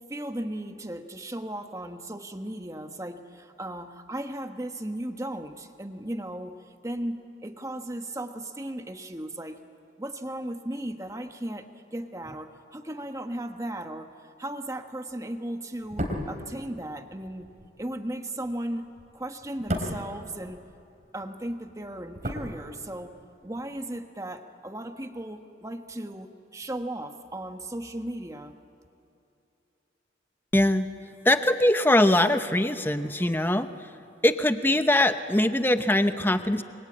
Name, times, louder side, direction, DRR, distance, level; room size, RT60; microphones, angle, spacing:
voice 1, 0.0-9.6 10.0-14.1 14.4-20.6 21.1-23.2 23.4-28.5, right 1 dB, 15° right, 6 dB, 1.2 m, -36 dB
sound 1, 15.8-21.1 21.4-23.2 23.5-23.6, equal, 40° right, 3.7 m, -36 dB
voice 2, 30.5-30.9 31.2-33.9 34.2-36.6, left 1 dB, 10° left, 9 dB, 0.8 m, -22 dB
29.0 x 23.5 x 8.7 m, 2.8 s
head